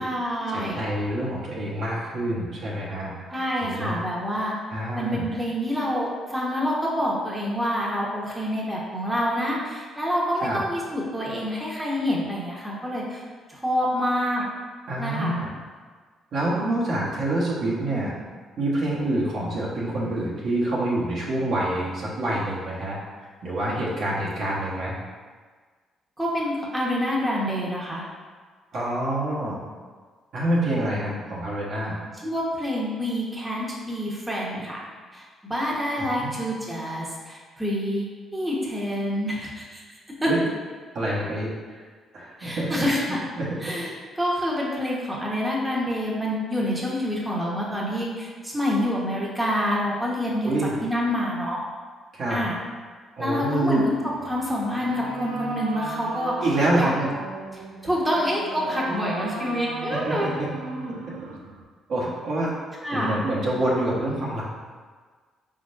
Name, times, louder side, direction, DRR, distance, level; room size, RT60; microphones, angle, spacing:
voice 1, 0.0-0.8 3.3-4.5 4.9-13.2 13.5-14.4 15.0-15.4 26.2-28.0 32.2-34.8 35.1-38.1 38.3-39.8 40.2-40.3 42.4-43.2 43.6-43.9 44.2-50.5 50.8-51.6 52.3-52.6 53.2-56.3 56.7-56.9 57.8-60.3 62.8-63.2, equal, 10° right, -5 dB, 1.3 m, -27 dB
voice 2, 0.5-3.1 3.6-4.0 4.7-5.2 10.4-10.6 14.9-15.5 16.3-18.1 18.6-24.9 28.7-29.6 30.3-32.0 36.2-36.3 40.3-40.4 40.9-41.9 42.1-42.8 43.4-43.5 50.4-50.7 52.1-52.4 53.2-53.8 56.4-57.1 58.9-59.0 60.0-60.5 61.9-62.5 62.9-64.4, right 1 dB, 65° right, -6 dB, 1.2 m, -26 dB
sound 1, 53.6-61.6, right 3 dB, 85° right, 0.5 m, -36 dB
4.9 x 3.7 x 2.6 m, 1.5 s
supercardioid pair, 55°, 0 cm